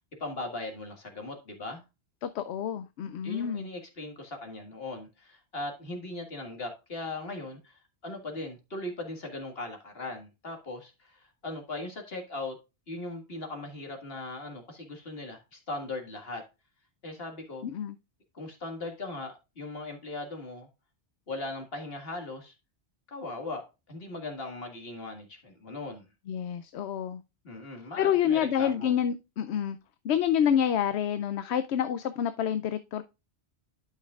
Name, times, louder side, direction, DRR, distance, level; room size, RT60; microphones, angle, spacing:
voice 1, 0.2-1.8 3.2-12.6 12.9-16.4 17.0-17.6 18.3-20.7 21.3-22.5 23.1-26.1 27.4-28.9, left 2 dB, 65° left, 2.0 m, -39 dB
voice 2, 2.2-3.7 17.6-18.0 26.3-27.2 28.0-29.8 30.0-33.0, left 9 dB, 85° left, 0.8 m, -28 dB
12.0 x 5.8 x 2.4 m
omnidirectional pair, 1.1 m